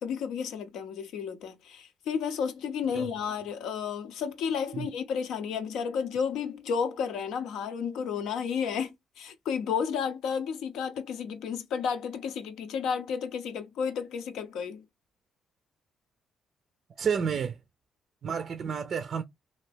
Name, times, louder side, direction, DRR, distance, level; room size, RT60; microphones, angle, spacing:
voice 1, 0.0-14.8, left 7 dB, 85° left, 0.6 m, -32 dB
voice 2, 17.0-17.6 18.2-19.2, right 7 dB, 55° right, 0.4 m, -30 dB
2.8 x 2.6 x 3.3 m
cardioid pair, 90°, 0 cm